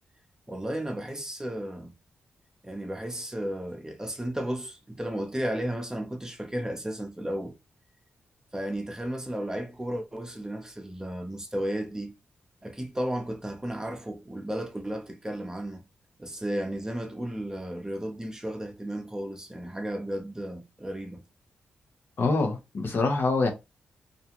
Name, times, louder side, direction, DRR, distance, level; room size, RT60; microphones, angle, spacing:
voice 1, 0.5-1.9 2.6-7.6 8.5-12.2 12.6-15.8 16.2-21.2, right 1 dB, 15° right, 0.7 m, -34 dB
voice 2, 22.2-23.5, left 3 dB, 60° left, 0.8 m, -25 dB
2.5 x 2.3 x 2.8 m
cardioid pair, 60°, 4 cm